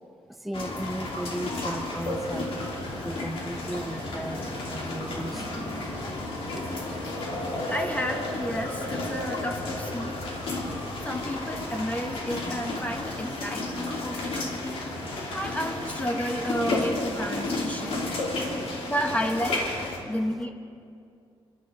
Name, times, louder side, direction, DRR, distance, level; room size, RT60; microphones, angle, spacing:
voice 1, 0.3-2.5 3.0-6.9 18.0-18.9 19.2-19.3 20.0-20.5, right 1 dB, ahead, 8 dB, 0.4 m, -37 dB
sound 1, 0.5-20.0, left 2 dB, 65° left, 2.7 m, -32 dB
voice 2, 7.7-10.2 11.0-14.9 15.3-18.1 18.6-19.6 20.1-20.5, equal, 15° left, 4 dB, 0.9 m, -31 dB
28.0 x 12.0 x 3.7 m, 2.4 s
cardioid pair, 120°, 10 cm